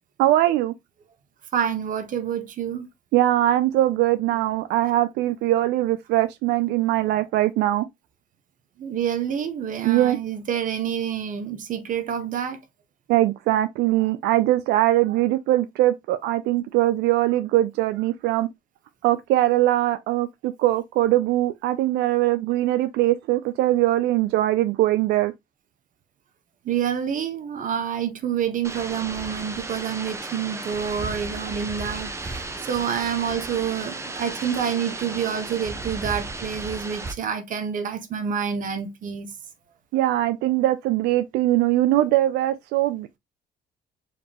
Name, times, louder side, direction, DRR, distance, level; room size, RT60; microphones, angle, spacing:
voice 1, 0.2-0.7 3.1-7.9 9.8-10.2 13.1-18.5 19.0-25.3 39.9-43.2, right 15 dB, 85° right, 0.4 m, -21 dB
voice 2, 1.5-2.9 8.8-12.6 26.6-39.3, right 8 dB, 50° right, 1.2 m, -28 dB
sound 1, 28.6-37.1, right 3 dB, 15° right, 0.7 m, -34 dB
4.7 x 3.6 x 2.9 m
cardioid pair, 110°, 17 cm